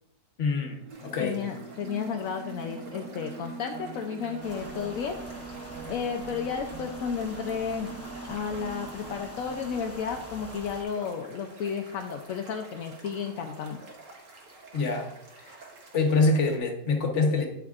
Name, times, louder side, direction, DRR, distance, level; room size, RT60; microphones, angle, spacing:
voice 1, 0.4-1.4 14.7-15.1 15.4-15.6 15.9-17.5, left 3 dB, 45° left, 3 dB, 1.2 m, -25 dB
sound 1, 0.7-9.9, right 5 dB, 70° right, 1.1 m, -43 dB
sound 2, 0.9-16.6, right 2 dB, 50° right, 1.7 m, -50 dB
voice 2, 1.2-5.2 5.9-7.9 8.3-13.8, left 7 dB, 65° left, 3 dB, 0.9 m, -33 dB
sound 3, 4.4-10.8, left 2 dB, 15° left, 0.6 m, -45 dB
9.4 x 8.1 x 2.4 m, 0.88 s
omnidirectional pair, 1.9 m